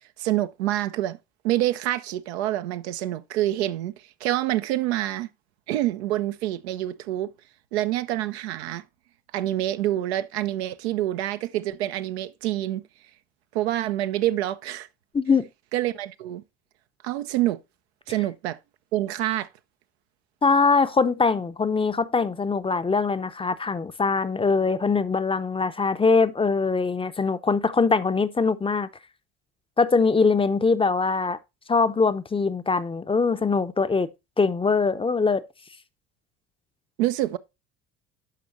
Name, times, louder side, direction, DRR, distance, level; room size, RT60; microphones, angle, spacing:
voice 1, 0.2-1.2 1.4-3.9 4.2-5.3 5.7-7.3 7.7-8.8 9.3-12.8 13.5-14.9 15.7-16.4 17.0-17.6 18.1-18.6 18.9-19.5 37.0-37.4, right 14 dB, 75° right, 0.6 m, -26 dB
voice 2, 15.1-15.5 20.4-28.9 29.8-31.4 31.7-34.1 34.4-35.4, left 4 dB, 15° left, 0.6 m, -22 dB
12.5 x 5.1 x 2.5 m
hypercardioid pair, 60°, 33 cm